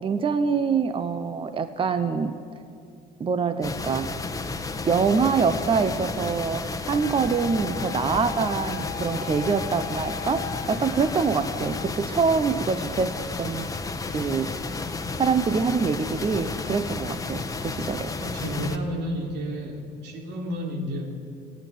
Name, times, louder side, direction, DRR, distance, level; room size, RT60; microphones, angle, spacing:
voice 1, 0.0-2.3 3.2-4.1 4.8-13.7 14.1-14.5 15.1-18.1, right 5 dB, 30° right, 11 dB, 0.9 m, -25 dB
sound 1, 3.6-18.8, left 3 dB, 20° left, 1.3 m, -32 dB
Wind instrument woodwind instrument, 7.0-12.0, left 13 dB, 85° left, 1.2 m, -38 dB
voice 2, 18.2-21.2, equal, 85° right, 3 dB, 3.4 m, -31 dB
29.0 x 10.5 x 9.4 m, 2.4 s
cardioid pair, 110°, 17 cm